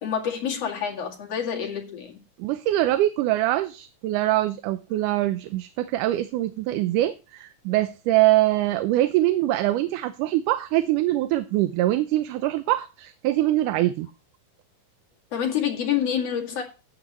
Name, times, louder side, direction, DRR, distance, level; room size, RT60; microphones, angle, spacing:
voice 1, 0.0-2.2 15.3-16.6, left 8 dB, 50° left, 3.0 m, -27 dB
voice 2, 2.4-14.1, right 15 dB, 80° right, 2.1 m, -23 dB
14.0 x 8.8 x 3.0 m
omnidirectional pair, 3.7 m